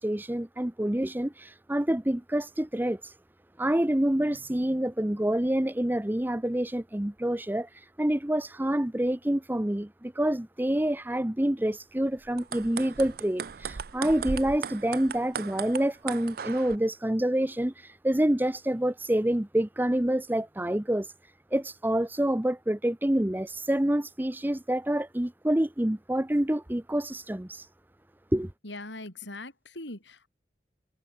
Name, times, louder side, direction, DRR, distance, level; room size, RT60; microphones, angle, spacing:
voice 1, 0.0-3.1 3.6-7.7 8.0-21.1 21.5-27.6 28.3-28.5, right 1 dB, 10° right, 0.6 m, -27 dB
sound 1, 12.3-16.8, right 6 dB, 55° right, 0.5 m, -37 dB
voice 2, 28.6-30.3, left 2 dB, 75° left, 6.7 m, -41 dB
head